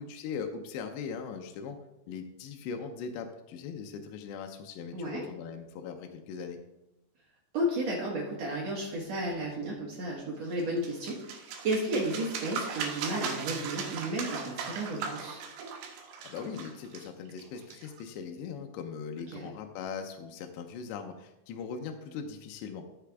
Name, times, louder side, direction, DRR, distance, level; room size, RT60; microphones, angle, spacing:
voice 1, 0.0-1.8 2.1-6.6 16.2-22.8, left 6 dB, 80° left, 4 dB, 2.9 m, -40 dB
voice 2, 4.9-5.2 7.5-15.4 19.3-19.5, right 1 dB, 90° right, -3 dB, 1.4 m, -33 dB
sound 1, 10.6-18.1, right 5 dB, 70° right, 2.6 m, -38 dB
13.0 x 6.8 x 3.5 m, 0.95 s
omnidirectional pair, 5.3 m